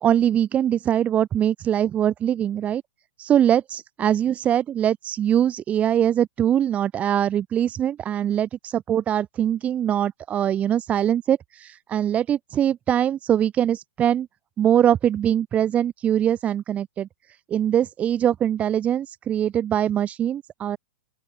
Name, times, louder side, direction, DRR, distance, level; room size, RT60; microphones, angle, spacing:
voice 1, 0.0-2.8 3.2-14.3 14.6-17.1 17.5-20.8, right 10 dB, 20° right, 2.9 m, -22 dB
open air
hypercardioid pair, 135°, 6 cm